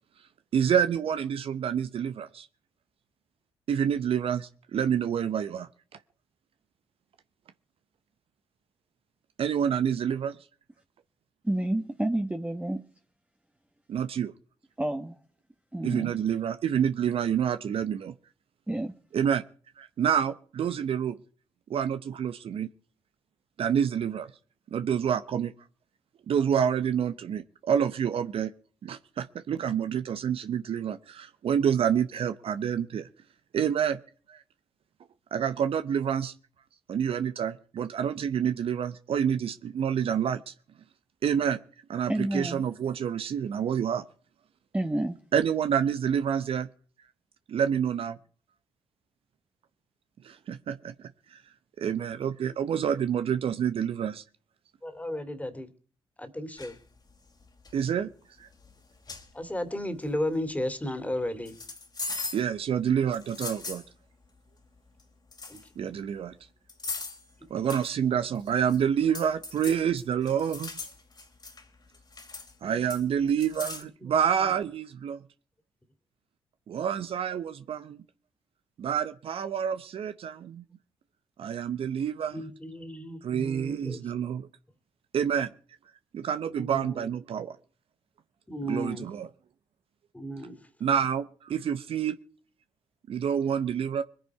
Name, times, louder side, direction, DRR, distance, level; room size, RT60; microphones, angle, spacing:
voice 1, 0.5-2.5 3.7-5.7 9.4-10.4 13.9-14.3 15.8-18.1 19.1-19.4 19.8-21.2 21.7-22.7 23.6-24.3 24.7-25.5 26.3-28.5 28.8-33.1 33.5-34.0 34.3-34.4 35.3-36.3 36.9-40.5 41.2-41.6 41.9-44.0 45.3-46.7 47.5-48.2 50.2-51.4 51.8-54.2 57.7-58.1 58.4-58.5 62.3-63.8 65.8-66.3 67.5-70.7 72.6-75.2 76.7-78.0 78.8-80.6 81.4-82.4 83.2-84.5 85.1-85.5 86.1-87.5 88.7-89.3 90.8-92.2 93.1-94.0, right 8 dB, 60° right, 0.8 m, -28 dB
voice 2, 11.4-12.8 14.8-15.1 15.7-16.1 18.7-18.9 42.1-42.6 44.7-45.2, right 1 dB, 10° right, 1.3 m, -29 dB
voice 3, 54.8-55.7 56.2-56.8 59.3-61.5 65.5-65.6 72.7-72.9 74.0-74.2 82.3-84.1 86.6-87.1 88.5-89.1 90.1-90.7, left 1 dB, 15° left, 2.6 m, -34 dB
sound 1, 56.6-56.8 57.4-57.7 58.6-58.7 59.1-59.3 61.4-62.5 63.1-63.9 65.0-65.1 65.3-65.7 66.7-67.2 67.7-67.9 68.3-68.8 69.1-71.6 71.9-72.5 72.9-73.8, left 3 dB, 40° left, 2.7 m, -39 dB
22.0 x 10.0 x 4.8 m
hypercardioid pair, 45°, 11 cm